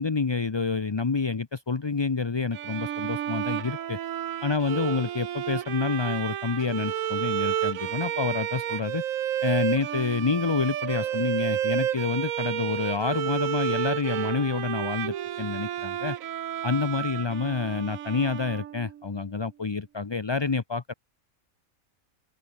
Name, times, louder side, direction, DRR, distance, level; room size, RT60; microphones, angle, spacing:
voice 1, 0.0-4.0 4.4-9.0 9.4-16.2 16.6-20.9, left 4 dB, 30° left, 0.5 m, -28 dB
Bowed string instrument, 2.5-19.1, right 11 dB, 70° right, 1.2 m, -31 dB
open air
omnidirectional pair, 1.5 m